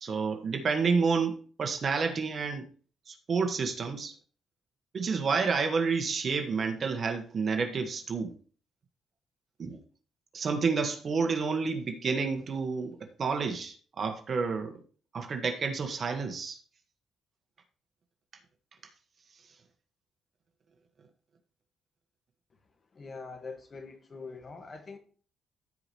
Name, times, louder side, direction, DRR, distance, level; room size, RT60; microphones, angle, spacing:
voice 1, 0.0-2.6 3.1-4.1 4.9-8.3 9.6-9.8 10.3-14.8 15.1-16.6, right 5 dB, 45° right, 1.6 m, -29 dB
voice 2, 22.9-25.0, left 4 dB, 40° left, 1.7 m, -43 dB
15.0 x 5.0 x 3.1 m
cardioid pair, 90°, 0 cm